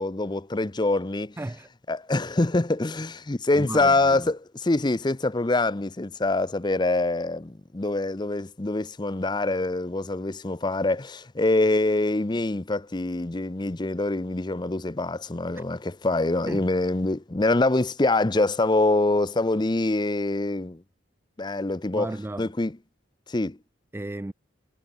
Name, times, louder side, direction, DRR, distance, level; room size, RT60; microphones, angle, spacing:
voice 1, 0.0-1.4 1.9-20.8 21.4-22.7 23.3-23.6, left 2 dB, 20° left, 0.6 m, -25 dB
voice 2, 1.4-1.7 3.6-4.3 15.5-15.6 16.5-16.6 22.0-22.5 23.9-24.3, right 1 dB, 10° right, 0.3 m, -34 dB
head